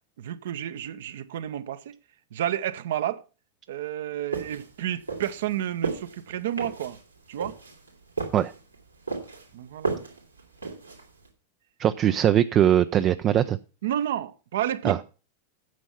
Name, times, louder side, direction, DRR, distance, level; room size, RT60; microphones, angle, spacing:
voice 1, 0.2-1.9 2.3-3.2 3.7-7.0 7.3-7.6 9.5-10.0 13.8-15.0, right 11 dB, 60° right, 0.8 m, -30 dB
sound 1, 4.3-11.3, right 4 dB, 85° right, 2.8 m, -35 dB
voice 2, 11.8-13.6 14.8-15.0, right 10 dB, 30° right, 0.4 m, -21 dB
9.3 x 7.1 x 5.8 m
figure-of-eight pair, 90°, 0 cm